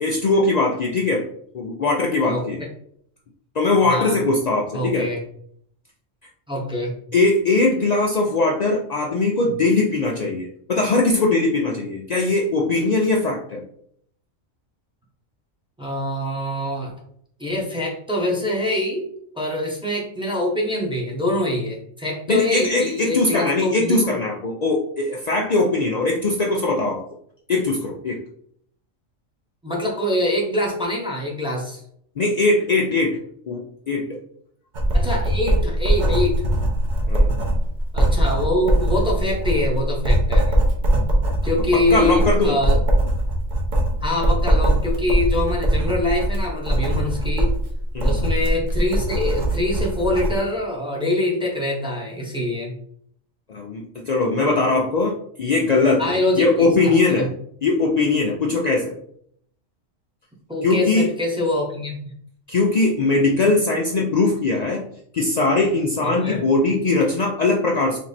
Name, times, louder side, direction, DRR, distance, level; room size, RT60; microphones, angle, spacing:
voice 1, 0.0-1.3 1.5-2.6 3.5-5.1 7.1-13.6 22.3-27.0 27.5-28.2 32.2-33.2 33.5-34.2 37.1-37.3 41.7-42.6 47.9-48.2 53.5-57.3 57.6-58.9 60.6-61.1 62.5-68.0, left 3 dB, 65° left, -1 dB, 0.4 m, -20 dB
voice 2, 4.7-5.2 6.5-7.0 15.8-16.9 17.4-19.1 19.3-24.2 29.6-31.8 34.9-36.4 37.9-40.6 41.4-42.8 44.0-47.5 48.0-52.7 56.0-57.3 60.5-61.9 66.0-66.4, left 1 dB, 5° right, -3 dB, 0.9 m, -24 dB
Writing, 34.7-50.4, right 1 dB, 40° right, 0.9 m, -21 dB
3.4 x 3.0 x 4.2 m, 0.67 s
omnidirectional pair, 1.4 m